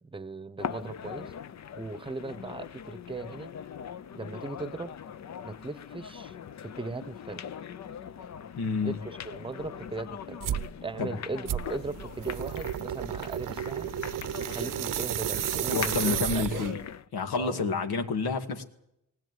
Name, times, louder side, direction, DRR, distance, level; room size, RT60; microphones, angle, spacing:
voice 1, 0.0-1.3 1.8-3.5 4.1-5.0 5.4-6.4 6.6-7.4 8.6-10.4 10.8-13.9 14.4-16.2 16.5-16.6 17.4-17.8, right 3 dB, 15° right, 16 dB, 1.0 m, -38 dB
sound 1, 0.6-17.1, left 8 dB, 50° left, 0.8 m, -41 dB
voice 2, 8.6-9.0 11.0-11.1 15.7-16.8 17.1-18.6, left 4 dB, 85° left, 5 dB, 2.3 m, -29 dB
sound 2, 10.4-10.7 11.5-16.9, right 11 dB, 60° right, 0.9 m, -32 dB
19.5 x 19.5 x 9.5 m, 0.77 s
wide cardioid pair, 160°, 36 cm